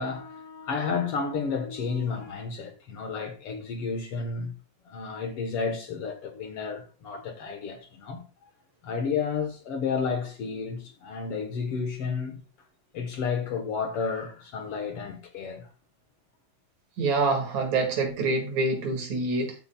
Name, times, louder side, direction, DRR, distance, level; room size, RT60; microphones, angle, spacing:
voice 1, 0.0-4.5 4.9-8.2 8.8-12.4 12.9-15.7, left 5 dB, 55° left, 2.0 m, -31 dB
voice 2, 17.0-19.5, right 3 dB, 70° right, 3.3 m, -26 dB
13.5 x 8.7 x 2.3 m
omnidirectional pair, 3.4 m